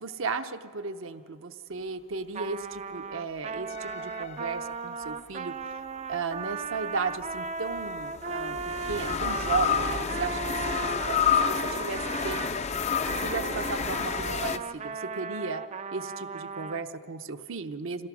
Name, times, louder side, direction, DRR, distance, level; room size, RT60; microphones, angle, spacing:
voice 1, 0.0-5.5 6.1-10.6 10.9-12.4 13.1-15.6 15.9-18.1, right 4 dB, 60° right, 9 dB, 0.7 m, -35 dB
Trumpet, 2.3-12.6 13.1-16.8, right 5 dB, 30° right, 0.4 m, -36 dB
sound 1, 3.7-5.2 7.0-14.6, left 7 dB, 30° left, 0.5 m, -30 dB
27.0 x 17.0 x 6.2 m, 2.4 s
head